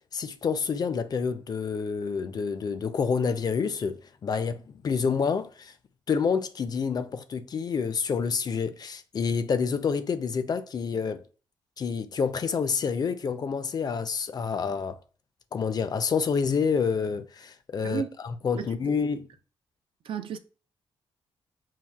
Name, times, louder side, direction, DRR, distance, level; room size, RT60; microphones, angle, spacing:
voice 1, 0.1-5.7 6.1-11.2 11.8-15.0 15.5-19.2, left 6 dB, 45° left, 0.4 m, -28 dB
voice 2, 17.8-18.2 18.6-18.8 20.0-20.4, right 7 dB, 65° right, 0.4 m, -33 dB
5.7 x 2.4 x 2.3 m
cardioid pair, 80°, 10 cm